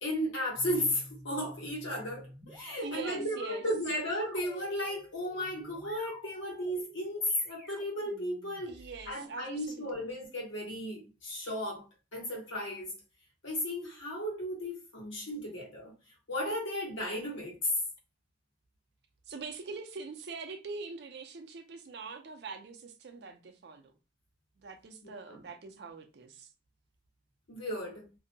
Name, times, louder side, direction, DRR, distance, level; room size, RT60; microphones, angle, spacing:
voice 1, 0.0-8.8 9.1-11.8 12.1-12.9 13.4-15.9 16.3-17.6 25.0-25.4 27.5-28.1, equal, 80° left, 1.2 m, -35 dB
sound 1, 0.5-9.1, equal, ahead, 0.5 m, -52 dB
voice 2, 2.8-3.6 8.7-10.1 19.3-23.9 24.6-26.5, right 4 dB, 55° right, 0.4 m, -43 dB
2.6 x 2.1 x 2.6 m
head